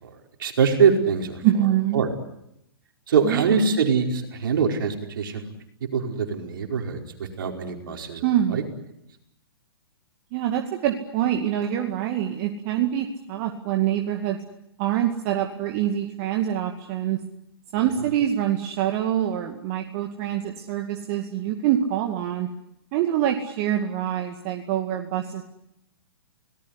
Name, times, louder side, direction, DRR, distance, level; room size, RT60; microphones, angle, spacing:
voice 1, 0.4-1.4 1.9-2.1 3.1-5.4 5.9-7.0 7.4-8.2 8.5-8.6, right 6 dB, 60° right, 3 dB, 5.0 m, -23 dB
voice 2, 1.4-2.1 3.2-3.7 8.2-8.6 10.3-14.4 14.8-17.2 17.7-22.5 22.9-25.4, right 11 dB, 40° right, 3 dB, 2.3 m, -25 dB
29.5 x 19.0 x 9.9 m, 0.80 s
figure-of-eight pair, 120°, 13 cm